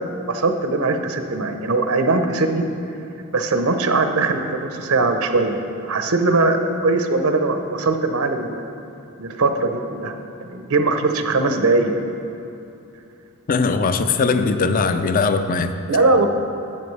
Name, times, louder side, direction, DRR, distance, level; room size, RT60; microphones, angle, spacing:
voice 1, 0.0-2.7 3.3-8.7 9.2-10.1 10.4-12.0 15.9-16.3, right 3 dB, 85° right, 6 dB, 0.8 m, -20 dB
voice 2, 13.5-15.7, left 4 dB, 40° left, 9 dB, 0.4 m, -20 dB
12.0 x 8.9 x 3.2 m, 2.8 s
head